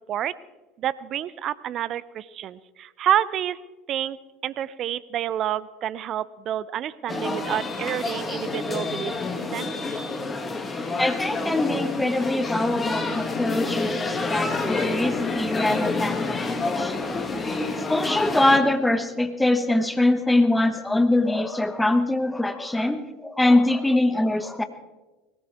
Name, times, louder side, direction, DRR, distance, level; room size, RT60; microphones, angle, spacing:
voice 1, 0.8-3.6 3.9-4.2 4.4-9.2 9.5-9.7, right 11 dB, 45° right, 18 dB, 0.6 m, -28 dB
sound 1, 7.1-18.6, left 3 dB, 25° left, 2.2 m, -28 dB
voice 2, 11.0-17.0 17.7-24.6, left 2 dB, 10° left, 9 dB, 1.4 m, -23 dB
20.5 x 18.5 x 3.5 m, 1.2 s
figure-of-eight pair, 70°, 0 cm